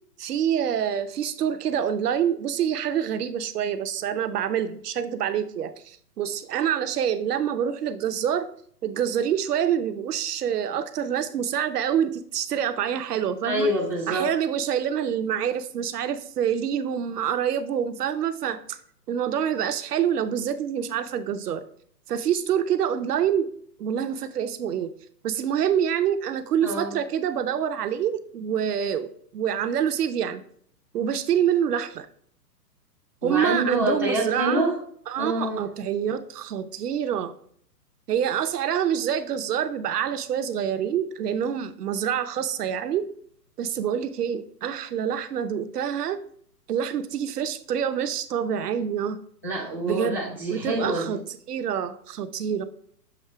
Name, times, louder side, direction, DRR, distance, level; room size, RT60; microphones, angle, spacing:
voice 1, 0.2-8.5 8.8-13.7 14.1-18.8 19.1-21.6 22.1-23.5 23.8-24.9 25.2-30.4 30.9-32.1 33.2-34.7 35.1-37.3 38.1-43.1 43.6-46.2 46.7-49.2 49.8-50.2 50.5-51.2 51.5-52.6, right 9 dB, 70° right, 10 dB, 0.8 m, -26 dB
voice 2, 13.4-14.3 26.6-26.9 33.2-34.8 35.2-35.6 49.4-51.2, right 1 dB, 15° right, -5 dB, 0.3 m, -26 dB
7.1 x 2.8 x 4.6 m, 0.63 s
hypercardioid pair, 135°, 48 cm